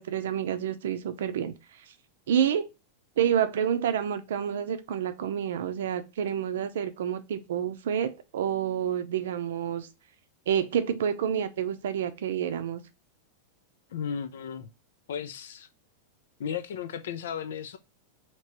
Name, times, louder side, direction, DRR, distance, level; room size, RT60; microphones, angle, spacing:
voice 1, 0.0-1.5 1.9-2.0 2.3-2.7 3.2-9.9 10.5-12.8, right 9 dB, 80° right, 0.5 m, -28 dB
voice 2, 13.9-14.7 15.1-15.7 16.4-17.8, left 7 dB, 85° left, 0.4 m, -35 dB
2.9 x 2.9 x 4.5 m
supercardioid pair, 180°, 0 cm